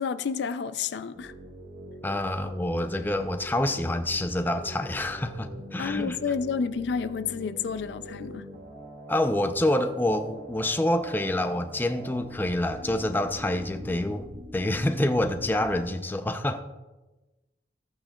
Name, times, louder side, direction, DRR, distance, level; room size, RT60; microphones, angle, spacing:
voice 1, 0.0-1.3 5.8-8.5, left 6 dB, 70° left, 0.4 m, -30 dB
sound 1, 1.2-15.9, equal, 55° right, 1.2 m, -43 dB
voice 2, 2.0-6.2 9.1-14.3 14.5-16.6, left 1 dB, 10° left, 0.4 m, -27 dB
14.0 x 8.6 x 2.3 m
head